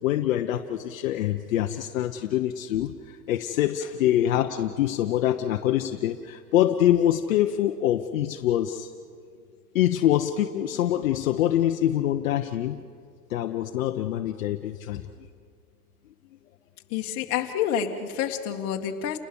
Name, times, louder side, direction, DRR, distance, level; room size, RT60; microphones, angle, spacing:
voice 1, 0.0-8.9 9.7-12.9 13.3-15.0, left 12 dB, 55° left, 5 dB, 1.1 m, -25 dB
voice 2, 16.9-19.2, left 9 dB, 30° left, 2 dB, 2.0 m, -28 dB
29.5 x 20.5 x 7.1 m, 2.1 s
hypercardioid pair, 155°, 47 cm